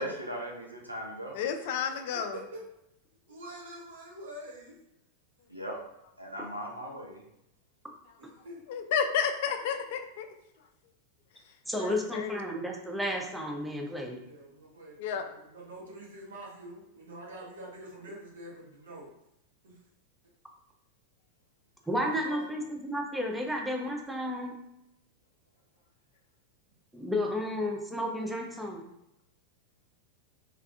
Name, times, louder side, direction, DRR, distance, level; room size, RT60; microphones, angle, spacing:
voice 1, 0.0-1.4 5.5-5.8 6.2-7.2, right 1 dB, 85° right, -1 dB, 0.7 m, -38 dB
voice 2, 1.3-2.4 8.7-10.3 11.8-12.5 15.0-15.2, left 7 dB, 50° left, 6 dB, 0.4 m, -31 dB
voice 3, 1.9-2.6 3.3-4.8 8.2-8.6 14.2-19.1 19.6-19.8 22.0-22.6, right 1 dB, 65° right, -3 dB, 1.1 m, -46 dB
voice 4, 11.7-14.2 21.9-24.6 26.9-28.8, left 1 dB, 5° right, 1 dB, 0.5 m, -32 dB
3.4 x 3.2 x 2.4 m, 0.85 s
figure-of-eight pair, 90°, 0 cm